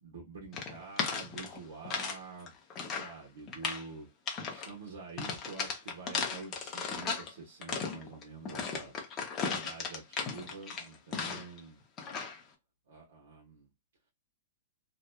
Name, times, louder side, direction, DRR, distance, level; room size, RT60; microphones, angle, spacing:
voice 1, 0.0-4.1 4.5-8.9 9.4-11.8 12.9-13.7, right 4 dB, 75° right, 1.0 m, -47 dB
sound 1, 0.5-2.2 2.5-3.1 3.5-3.9 4.3-4.7 5.2-7.3 7.6-11.6 12.0-12.4, left 5 dB, 20° left, 0.5 m, -36 dB
2.7 x 2.2 x 2.2 m
hypercardioid pair, 170°, 0 cm